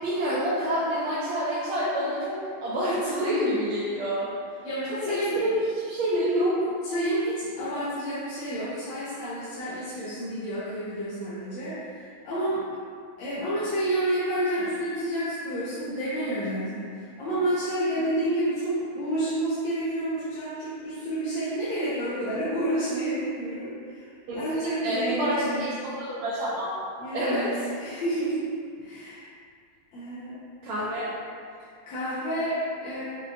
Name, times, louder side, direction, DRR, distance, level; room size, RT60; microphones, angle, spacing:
voice 1, 0.0-4.3 5.0-5.5 5.9-6.7 24.3-24.4 24.8-25.7 26.0-26.7 27.1-27.6 30.6-31.1, equal, 85° right, -9 dB, 1.5 m, -27 dB
voice 2, 4.6-5.5 6.8-12.7 13.2-24.1 24.3-25.7 27.0-29.2 29.9-30.4 31.6-33.2, right 1 dB, 70° left, -10 dB, 1.4 m, -29 dB
5.5 x 2.2 x 2.6 m, 2.1 s
omnidirectional pair, 2.3 m